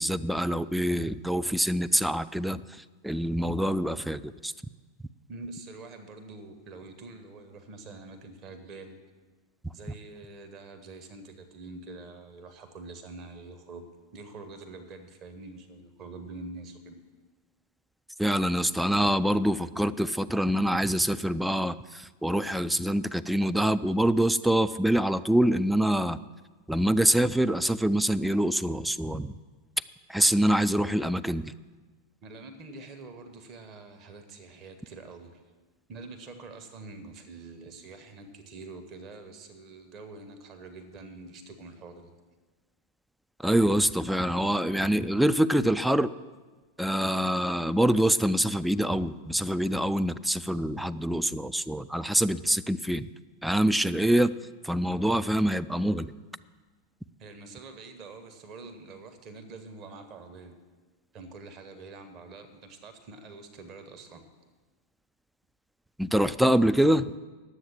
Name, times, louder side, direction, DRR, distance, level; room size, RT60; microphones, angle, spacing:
voice 1, 0.0-2.6 3.0-4.5 18.2-26.2 26.7-29.3 30.1-31.5 43.4-46.1 46.8-53.1 53.4-54.3 54.6-56.1 66.0-67.1, right 1 dB, ahead, 12 dB, 0.3 m, -25 dB
voice 2, 5.3-9.0 9.7-17.0 32.2-35.4 35.9-42.1 57.2-60.6 61.1-64.2, right 3 dB, 35° right, 7 dB, 1.2 m, -45 dB
10.0 x 7.8 x 7.3 m, 1.3 s
figure-of-eight pair, 90°, 0 cm